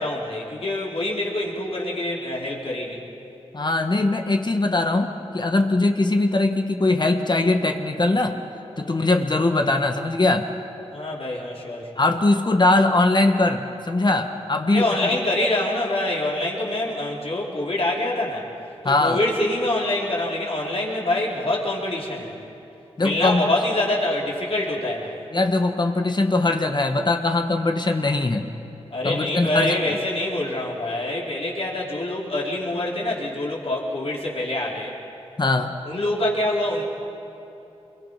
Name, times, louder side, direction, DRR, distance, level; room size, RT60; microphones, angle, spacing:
voice 1, 0.0-3.0 8.8-8.9 10.9-12.0 14.7-18.5 18.8-22.5 23.0-25.2 28.9-34.9 35.8-36.8, left 1 dB, 60° left, -3 dB, 4.7 m, -25 dB
voice 2, 3.5-8.4 8.8-10.5 12.0-15.0 15.4-15.5 18.8-19.2 23.0-23.4 25.3-28.5 29.0-29.7 35.4-35.8, left 2 dB, 40° left, 5 dB, 1.5 m, -21 dB
25.5 x 22.5 x 5.8 m, 2.9 s
cardioid pair, 45°, 11 cm